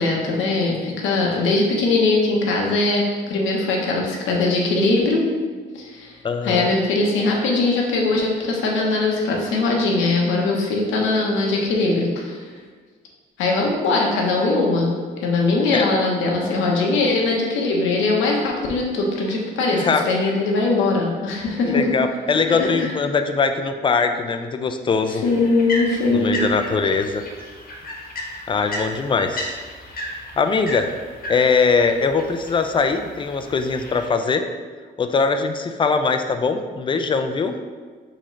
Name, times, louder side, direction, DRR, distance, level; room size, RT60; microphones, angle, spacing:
voice 1, 0.0-5.2 5.7-6.2 6.4-12.4 13.4-14.9 15.2-21.9 22.5-22.9 25.1-26.4 28.7-28.8, left 3 dB, 85° left, -1 dB, 0.9 m, -21 dB
voice 2, 6.2-6.7 15.7-15.9 19.7-20.1 21.6-25.2 26.1-27.2 28.5-29.5 30.4-31.0 31.3-34.5 35.0-37.5, left 4 dB, 25° left, 7 dB, 0.4 m, -21 dB
sound 1, 25.2-34.1, left 1 dB, 45° left, 1.0 m, -34 dB
4.3 x 3.9 x 3.1 m, 1.5 s
cardioid pair, 90°, 20 cm